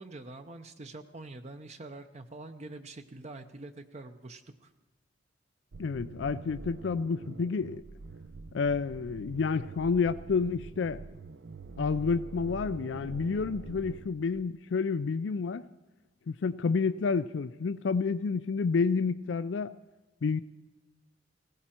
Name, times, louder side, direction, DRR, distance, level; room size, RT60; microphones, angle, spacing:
voice 1, 0.0-4.7, right 2 dB, 40° right, 0.7 m, -45 dB
sound 1, 5.7-14.6, right 3 dB, 70° right, 0.6 m, -45 dB
voice 2, 5.8-7.8 8.5-11.0 11.8-15.6 16.3-19.7 20.2-20.4, left 5 dB, 80° left, 0.4 m, -29 dB
19.0 x 17.0 x 4.4 m
head